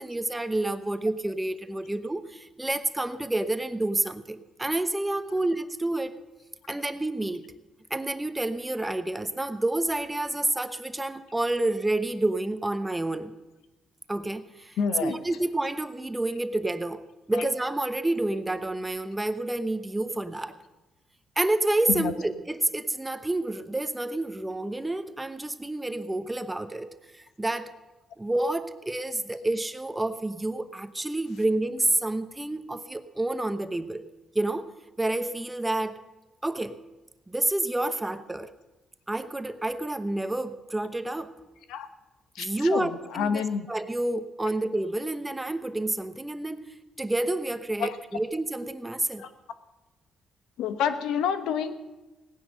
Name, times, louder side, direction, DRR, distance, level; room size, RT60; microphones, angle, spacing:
voice 1, 0.0-6.2 6.7-7.4 7.9-13.3 14.1-20.6 21.4-27.7 28.2-34.1 34.3-34.7 35.0-36.0 36.4-36.8 37.3-38.5 39.1-41.3 42.4-46.6 47.0-49.3, right 2 dB, 10° right, 10 dB, 0.9 m, -29 dB
voice 2, 14.8-15.2 21.9-22.1 41.7-41.9 42.3-42.9 43.1-43.7 47.8-48.0 49.2-49.3 50.6-51.7, left 7 dB, 90° left, 10 dB, 1.1 m, -28 dB
17.5 x 10.0 x 6.5 m, 1.1 s
cardioid pair, 90°, 0 cm